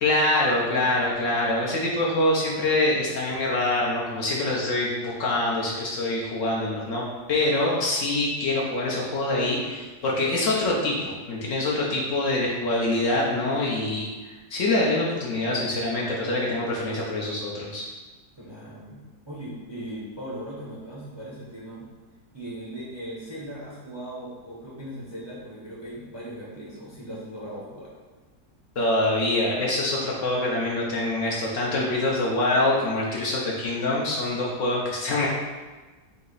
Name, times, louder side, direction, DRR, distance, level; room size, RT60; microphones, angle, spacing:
voice 1, 0.0-14.1 14.5-17.9 28.8-35.3, left 2 dB, 60° left, -4 dB, 0.9 m, -25 dB
voice 2, 18.4-21.9 22.3-27.9, right 1 dB, 25° right, -7 dB, 0.6 m, -38 dB
4.1 x 2.8 x 3.9 m, 1.3 s
omnidirectional pair, 1.7 m